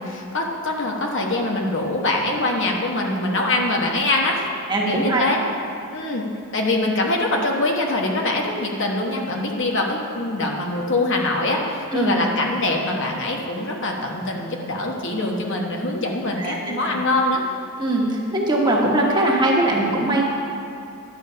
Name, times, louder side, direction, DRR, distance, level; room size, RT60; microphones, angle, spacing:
voice 1, 0.0-4.5 4.9-5.4 5.9-6.3 6.5-17.4, left 2 dB, 55° left, 0 dB, 1.2 m, -23 dB
voice 2, 4.7-5.3 11.9-12.2 16.4-16.9 17.8-20.2, right 1 dB, 20° right, -3 dB, 1.4 m, -21 dB
11.0 x 6.8 x 5.6 m, 2.6 s
head